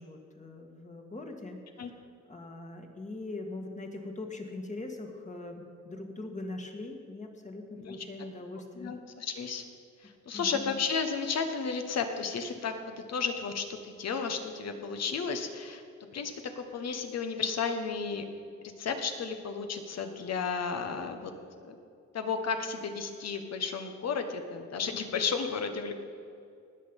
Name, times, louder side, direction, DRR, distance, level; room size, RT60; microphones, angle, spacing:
voice 1, 0.0-2.0 2.3-8.9 10.3-10.8, left 2 dB, 25° left, 3 dB, 1.8 m, -41 dB
voice 2, 8.8-9.6 10.0-15.8 16.1-18.2 18.8-21.3 21.7-21.8 22.1-25.9, left 5 dB, 60° left, 6 dB, 1.4 m, -33 dB
19.0 x 6.6 x 5.4 m, 2.5 s
cardioid pair, 90°, 30 cm